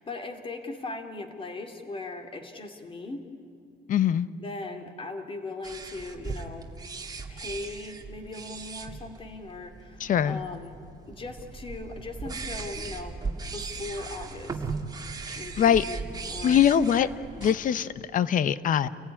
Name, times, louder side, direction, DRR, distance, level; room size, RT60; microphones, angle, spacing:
voice 1, 0.0-3.3 4.4-6.7 7.3-10.8 11.1-13.2 13.5-14.7 15.4-16.6 17.0-17.1, left 3 dB, 30° left, 6 dB, 2.9 m, -39 dB
voice 2, 3.9-4.3 10.0-10.4 15.3-15.8 16.4-17.1 17.4-18.9, left 9 dB, 50° left, 16 dB, 0.9 m, -23 dB
sound 1, 5.6-17.5, right 4 dB, 20° right, 2.1 m, -38 dB
29.5 x 16.0 x 10.0 m, 2.5 s
cardioid pair, 110°, 17 cm